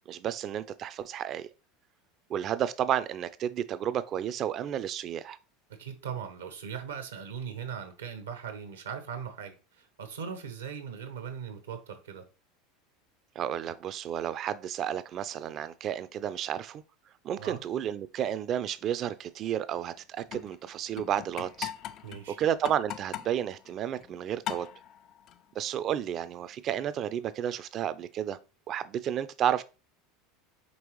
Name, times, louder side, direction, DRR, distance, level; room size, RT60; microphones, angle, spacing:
voice 1, 0.1-1.5 2.3-5.4 13.4-16.8 17.2-21.7 22.4-24.7 25.6-28.4 28.7-29.6, right 10 dB, 45° right, 0.4 m, -32 dB
voice 2, 5.7-12.3 17.4-17.6 22.0-22.4, right 7 dB, 85° right, 0.9 m, -39 dB
sound 1, 20.2-24.2 24.4-25.5 26.8-27.0, left 11 dB, 50° left, 0.3 m, -41 dB
5.3 x 3.0 x 3.0 m
hypercardioid pair, 85°, 0 cm